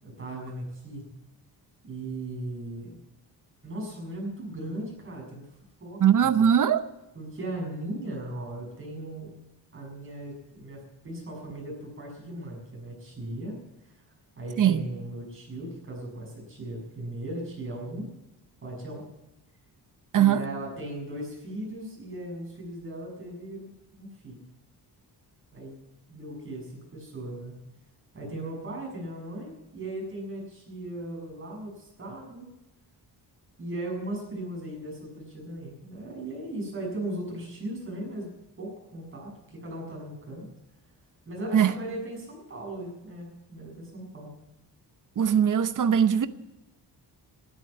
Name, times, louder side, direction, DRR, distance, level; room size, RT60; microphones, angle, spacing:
voice 1, 0.0-1.1 1.8-3.0 3.6-5.5 5.8-6.3 7.1-9.3 9.7-13.6 13.9-14.0 14.3-18.1 18.6-19.1 20.1-24.4 25.5-25.7 26.1-27.6 28.1-32.5 33.6-38.3 38.6-40.5 41.2-44.3, right 1 dB, 30° right, 6.9 m, -37 dB
voice 2, 6.0-6.8 14.6-14.8 20.1-20.4 41.5-41.7 45.2-46.3, right 9 dB, 50° right, 0.8 m, -20 dB
13.0 x 12.0 x 8.5 m
wide cardioid pair, 165°, 41 cm